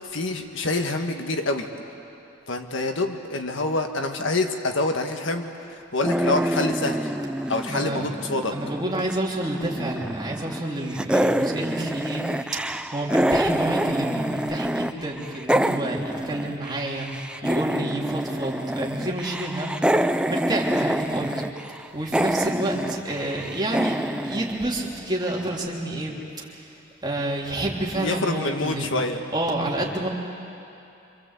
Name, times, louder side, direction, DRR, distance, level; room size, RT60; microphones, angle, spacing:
voice 1, 0.0-1.7 2.5-7.1 7.5-8.5 27.9-29.2, left 2 dB, 70° left, 5 dB, 1.7 m, -26 dB
sound 1, 6.0-9.1 9.4-10.7 10.9-14.9 15.2-25.2, right 1 dB, 5° right, 0.6 m, -26 dB
voice 2, 7.7-8.0 8.5-21.4 21.9-24.0 24.2-26.7 27.0-28.9 29.3-30.1, right 1 dB, 20° right, -3 dB, 3.4 m, -29 dB
26.5 x 26.0 x 8.3 m, 2.7 s
head